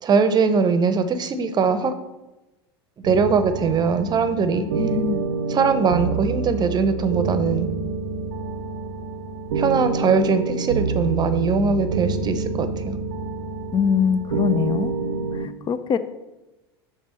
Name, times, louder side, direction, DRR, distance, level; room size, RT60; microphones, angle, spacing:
voice 1, 0.0-1.9 3.0-4.7 5.5-7.7 9.6-13.0, right 5 dB, 30° right, 10 dB, 0.7 m, -21 dB
sound 1, 3.0-15.5, right 4 dB, 80° right, 0.6 m, -27 dB
voice 2, 4.8-5.2 13.7-14.9 15.4-16.0, left 7 dB, 35° left, 13 dB, 0.5 m, -23 dB
6.1 x 3.9 x 5.5 m, 1.0 s
hypercardioid pair, 85°, 14 cm